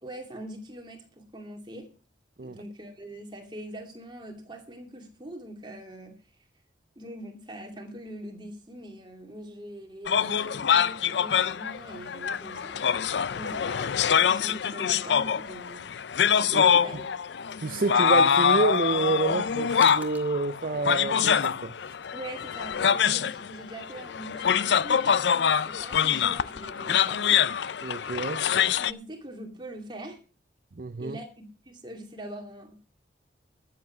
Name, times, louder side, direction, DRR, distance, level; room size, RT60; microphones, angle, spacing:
voice 1, 0.0-1.9 2.4-6.2 7.0-12.9 13.3-15.8 16.4-17.1 22.1-27.4 28.8-30.2 31.0-32.8, right 1 dB, 25° right, 2.5 m, -43 dB
sound 1, 10.1-28.9, left 7 dB, 75° left, 0.5 m, -25 dB
sound 2, 15.5-23.1, right 2 dB, 10° right, 1.6 m, -53 dB
voice 2, 17.6-21.7 26.9-27.1 27.8-28.5 30.8-31.2, right 3 dB, 50° right, 0.5 m, -29 dB
13.5 x 7.7 x 5.9 m
head